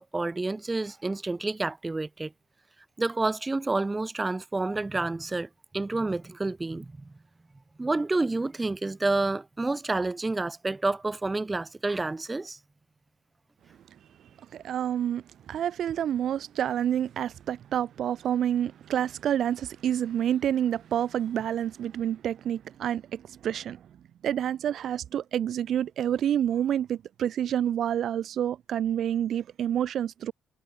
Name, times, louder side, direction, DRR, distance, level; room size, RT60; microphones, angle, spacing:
voice 1, 0.0-2.3 3.0-7.1 7.8-12.6, right 2 dB, 15° right, 3.4 m, -29 dB
voice 2, 14.5-23.8 24.2-30.3, right 10 dB, 55° right, 2.7 m, -28 dB
cardioid pair, 140°, 0 cm